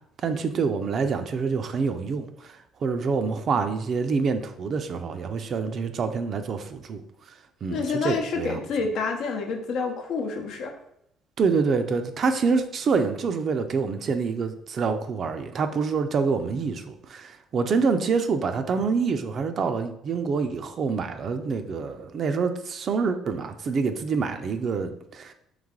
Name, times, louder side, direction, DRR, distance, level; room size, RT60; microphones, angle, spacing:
voice 1, 0.2-7.0 7.3-8.7 11.4-25.3, right 5 dB, 50° right, 0.4 m, -26 dB
voice 2, 7.7-10.7, left 4 dB, 75° left, 0.7 m, -28 dB
3.4 x 3.2 x 3.6 m
cardioid pair, 90°, 0 cm